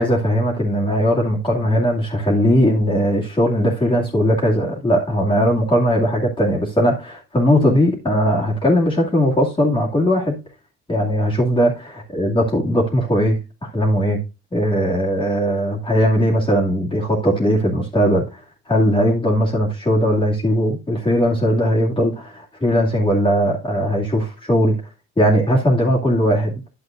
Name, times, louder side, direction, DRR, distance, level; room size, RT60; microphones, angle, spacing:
voice 1, 0.0-10.4 10.9-14.2 14.5-18.4 18.7-24.7 25.2-26.5, equal, 15° left, 2.3 m, -19 dB
9.9 x 7.8 x 2.5 m
cardioid pair, 90°, 30 cm